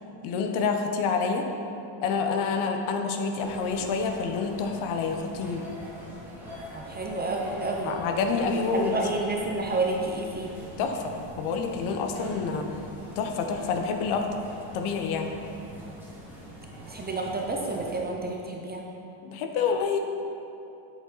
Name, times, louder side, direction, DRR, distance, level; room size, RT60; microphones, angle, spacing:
voice 1, 0.2-1.5 2.0-5.6 7.8-9.0 10.8-12.7 13.2-14.3 14.7-15.3 19.2-20.0, left 5 dB, 75° left, 4 dB, 1.0 m, -28 dB
sound 1, 3.4-18.0, right 1 dB, 5° right, 1.6 m, -44 dB
voice 2, 6.7-7.9 8.6-10.5 16.9-18.8, right 2 dB, 20° right, 0 dB, 0.4 m, -30 dB
8.1 x 6.5 x 4.0 m, 2.8 s
cardioid pair, 150°, 49 cm